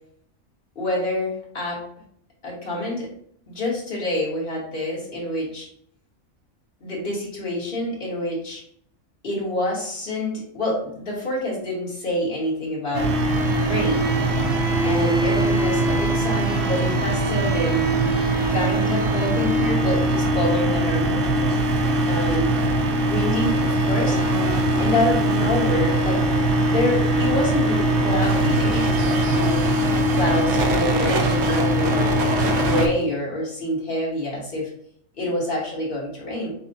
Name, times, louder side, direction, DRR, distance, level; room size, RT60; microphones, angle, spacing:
voice 1, 0.7-1.8 2.4-3.1 3.5-5.7 6.8-8.6 9.2-13.1 13.6-14.1 14.8-17.8 18.5-21.2 22.1-22.5 23.0-24.2 24.8-26.3 26.6-29.6 30.1-32.1 32.5-34.7 35.1-36.5, left 1 dB, 45° left, -4 dB, 1.4 m, -27 dB
sound 1, 12.9-32.9, right 1 dB, 75° right, 0.9 m, -21 dB
5.6 x 2.1 x 2.6 m, 0.66 s
omnidirectional pair, 1.3 m